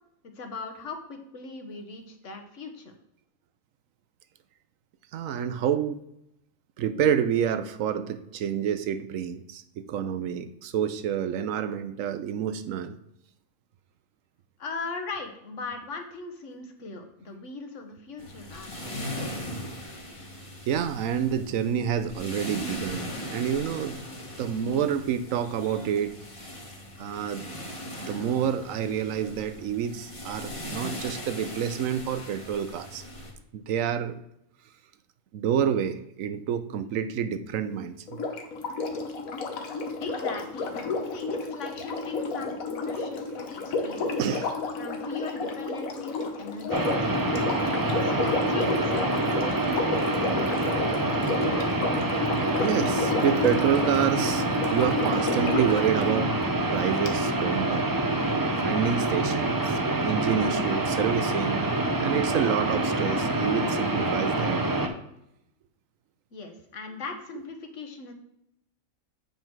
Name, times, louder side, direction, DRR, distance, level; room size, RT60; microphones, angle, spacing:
voice 1, 0.2-2.9 14.6-19.5 40.0-40.8 41.1-44.2 44.8-47.3 48.0-50.9 66.3-68.1, left 3 dB, 65° left, 5 dB, 1.4 m, -39 dB
voice 2, 5.1-6.0 6.8-13.0 20.7-24.0 24.4-26.5 27.0-27.5 28.0-33.0 33.5-34.2 35.3-38.2 43.8-44.5 52.6-54.4 54.7-56.4 56.7-57.9 58.6-61.7 62.0-64.6, right 8 dB, 75° right, 11 dB, 1.0 m, -28 dB
sound 1, 18.2-33.3, equal, 25° left, 1.3 m, -39 dB
Sink (filling or washing), 38.1-55.9 57.1-57.2, left 3 dB, 85° left, 1.4 m, -31 dB
sound 2, 46.7-64.9, right 2 dB, 25° right, 0.5 m, -26 dB
7.8 x 5.3 x 4.6 m, 0.81 s
omnidirectional pair, 1.4 m